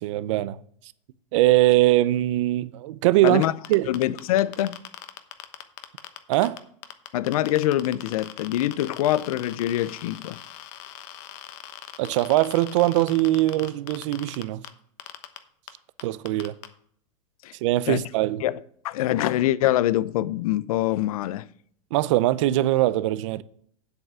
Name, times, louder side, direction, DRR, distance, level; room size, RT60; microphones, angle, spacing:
voice 1, 0.0-0.6 1.3-3.4 3.7-3.9 6.3-6.6 12.0-14.6 16.0-16.5 17.6-18.4 21.9-23.4, right 16 dB, 60° right, 0.6 m, -21 dB
sound 1, 3.3-6.6 6.8-14.7 15.0-15.4 15.7-15.8 16.0-16.7, left 14 dB, 45° left, 1.0 m, -40 dB
voice 2, 3.9-4.8 7.1-10.4 17.4-17.5 17.9-18.0 18.4-21.5, left 13 dB, 80° left, 0.6 m, -24 dB
8.0 x 7.9 x 6.1 m
supercardioid pair, 155°, 18 cm